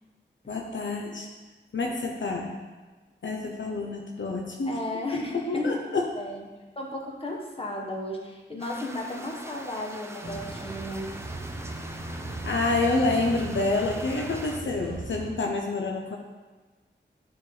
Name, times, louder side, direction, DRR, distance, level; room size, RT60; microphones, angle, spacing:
voice 1, 0.5-1.3 1.7-2.6 3.2-4.8 5.1-5.3 5.6-6.1 12.4-16.2, left 3 dB, 70° left, 1 dB, 0.7 m, -28 dB
voice 2, 4.7-6.4 6.7-11.1, left 1 dB, 30° left, -1 dB, 1.2 m, -34 dB
sound 1, 8.6-14.6, right 1 dB, 15° right, 0.6 m, -43 dB
sound 2, 10.2-15.3, right 2 dB, 50° right, 1.0 m, -37 dB
9.3 x 3.5 x 3.8 m, 1.3 s
wide cardioid pair, 60°, 20 cm